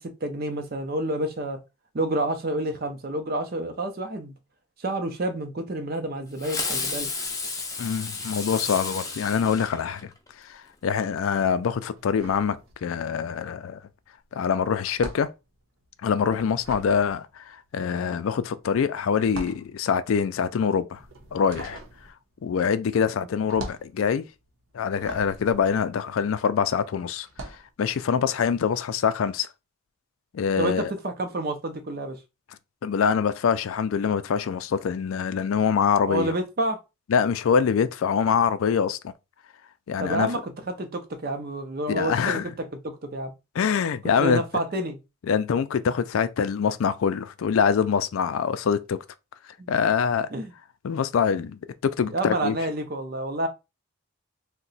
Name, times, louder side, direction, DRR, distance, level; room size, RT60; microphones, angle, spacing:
voice 1, 0.0-1.6 1.9-4.3 4.8-7.1 30.6-32.2 36.1-36.8 40.0-40.5 40.8-43.3 44.2-45.0 49.6-49.8 50.3-50.5 52.1-53.5, right 1 dB, 45° right, 0.6 m, -29 dB
Fireworks, 6.4-10.3, left 4 dB, 15° left, 0.5 m, -32 dB
voice 2, 7.8-10.1 10.4-13.8 14.3-15.3 16.0-21.0 21.3-21.8 22.4-24.2 24.7-27.3 27.8-29.5 30.3-30.9 32.8-36.3 37.1-39.1 39.9-40.3 41.9-42.5 43.6-44.4 45.3-49.0 49.7-50.3 50.8-52.6, left 6 dB, 80° left, 0.4 m, -24 dB
sound 1, 12.0-13.2 13.5-26.7 27.2-27.7, right 2 dB, 80° right, 0.8 m, -43 dB
2.8 x 2.2 x 4.0 m
head